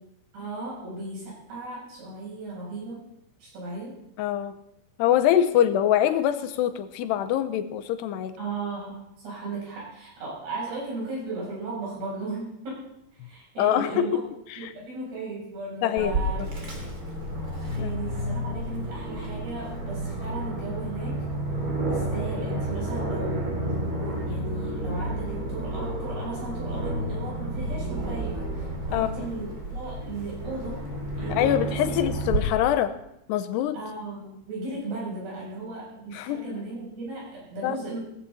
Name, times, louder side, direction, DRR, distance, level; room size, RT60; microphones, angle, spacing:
voice 1, 0.3-3.0 3.4-4.0 8.4-12.8 13.2-14.2 14.6-16.4 17.7-21.2 21.9-23.6 24.3-30.8 31.2-31.6 31.9-32.0 33.7-38.0, right 3 dB, 75° right, -6 dB, 10.0 m, -36 dB
voice 2, 4.2-4.6 5.0-8.4 13.6-14.1 14.5-14.7 15.8-16.5 17.8-17.9 28.9-29.1 31.3-32.9 33.3-33.8 36.1-36.5 37.6-37.8, left 11 dB, 90° left, 11 dB, 2.9 m, -24 dB
Aircraft, 16.0-32.4, right 1 dB, 25° right, 2.3 m, -31 dB
17.5 x 15.0 x 4.2 m, 0.81 s
omnidirectional pair, 4.8 m